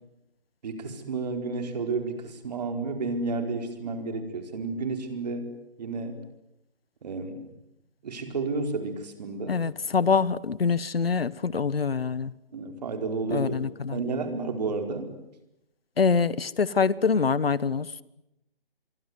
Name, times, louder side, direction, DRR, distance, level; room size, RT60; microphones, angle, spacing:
voice 1, 0.6-5.5 5.8-6.2 7.0-7.4 8.0-9.6 12.5-13.6 13.9-15.1, right 3 dB, 45° right, 6 dB, 4.7 m, -31 dB
voice 2, 9.5-12.3 13.3-14.0 16.0-17.9, left 5 dB, 75° left, 20 dB, 1.3 m, -25 dB
25.0 x 24.5 x 9.5 m, 0.87 s
figure-of-eight pair, 155°, 30 cm